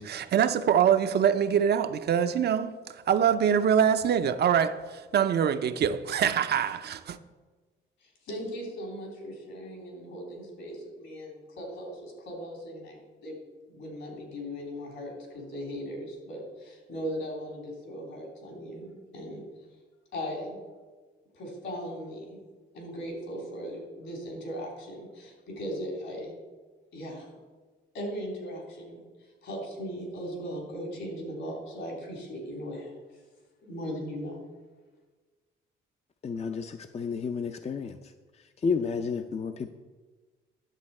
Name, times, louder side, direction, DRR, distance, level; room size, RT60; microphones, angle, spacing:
voice 1, 0.0-7.2, right 8 dB, 55° right, 0.6 m, -24 dB
voice 2, 8.0-13.4 13.7-19.4 20.1-20.6 21.3-22.4 22.7-26.3 26.9-27.3 27.9-32.9 33.6-34.4, equal, 70° left, 3.4 m, -38 dB
voice 3, 36.2-38.1 38.6-39.7, left 5 dB, 35° left, 0.5 m, -31 dB
11.0 x 7.2 x 4.3 m
cardioid pair, 90°, 20 cm